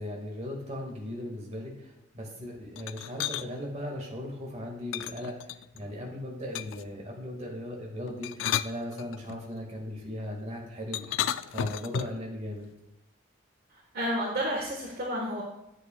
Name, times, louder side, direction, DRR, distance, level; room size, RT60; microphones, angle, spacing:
voice 1, 0.0-1.7 2.1-5.3 5.7-11.2 11.5-12.7, left 1 dB, 35° right, 0 dB, 2.0 m, -37 dB
sound 1, 2.8-3.5 4.9-5.8 6.5-6.9 8.1-9.4 10.9-12.3, left 10 dB, 80° left, 0.3 m, -33 dB
voice 2, 13.7-15.4, equal, 55° right, -2 dB, 1.5 m, -31 dB
10.5 x 7.8 x 2.4 m, 0.90 s
head